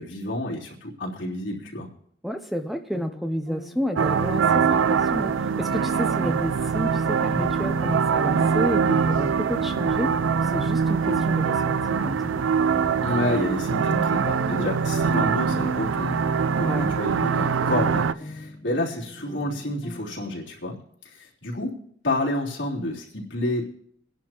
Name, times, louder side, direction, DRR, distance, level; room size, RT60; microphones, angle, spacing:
voice 1, 0.0-1.9 13.0-16.2 16.5-20.8 21.0-21.8 22.0-23.6, left 1 dB, 70° left, -5 dB, 3.3 m, -29 dB
voice 2, 2.2-12.4 16.6-17.0, equal, ahead, 6 dB, 0.6 m, -30 dB
sound 1, 2.9-20.4, left 1 dB, 30° left, 0.9 m, -41 dB
sound 2, 4.0-18.1, right 6 dB, 80° right, 0.4 m, -23 dB
24.5 x 10.5 x 2.9 m, 0.67 s
head